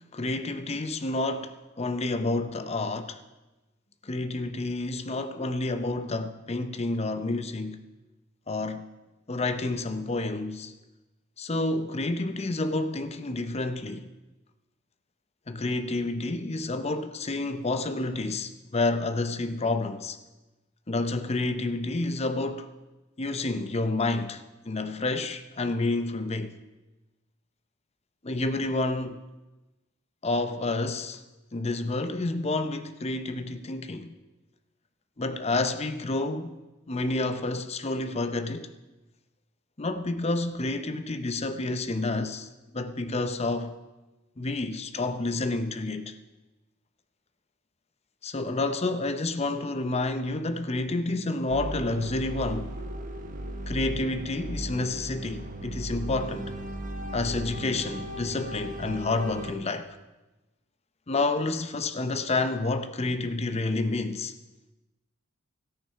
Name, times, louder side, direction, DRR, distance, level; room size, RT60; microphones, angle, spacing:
voice 1, 0.1-3.2 4.0-7.8 8.5-8.9 9.3-10.7 11.4-14.1 15.5-20.2 20.9-22.7 23.2-26.6 28.2-29.2 30.2-31.2 31.5-34.1 35.2-36.6 36.9-38.7 39.8-43.7 44.4-46.1 48.2-52.8 53.7-56.5 57.1-60.0 61.1-64.3, left 2 dB, 30° left, 0.7 m, -29 dB
sound 1, 51.5-59.5, right 1 dB, 40° right, 1.1 m, -36 dB
13.5 x 9.0 x 5.6 m
head